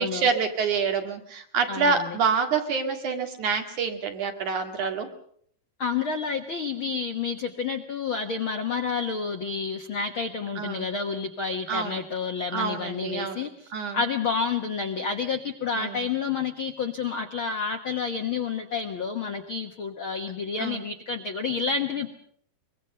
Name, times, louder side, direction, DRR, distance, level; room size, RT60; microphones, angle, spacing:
voice 1, 0.0-5.1 10.6-10.9 11.7-12.0 12.5-13.4 13.7-14.0 15.8-16.0 20.6-20.8, right 5 dB, 60° right, 5 dB, 3.4 m, -27 dB
voice 2, 1.7-2.2 5.8-22.1, left 5 dB, 60° left, 5 dB, 1.4 m, -29 dB
24.0 x 22.5 x 6.7 m, 0.63 s
omnidirectional pair, 4.2 m